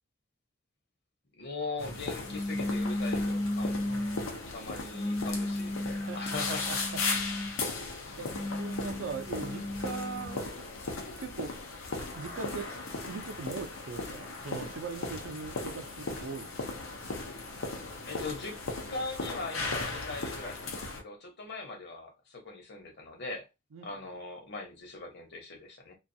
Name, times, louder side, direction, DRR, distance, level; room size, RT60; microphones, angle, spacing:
voice 1, 1.3-3.8 4.5-6.8 18.0-18.6 18.9-23.4 23.8-26.0, left 3 dB, 60° left, 0.9 m, -40 dB
sound 1, 1.8-21.0, left 3 dB, 85° left, 0.6 m, -37 dB
sound 2, 2.3-4.3 4.9-7.6 8.2-10.5, left 1 dB, 20° left, 0.5 m, -34 dB
voice 2, 3.8-4.4 6.1-6.8 8.2-8.3 8.6-10.6 11.2-11.6 12.1-16.7 23.7-23.9, right 5 dB, 70° right, 0.5 m, -40 dB
2.3 x 2.3 x 2.6 m
head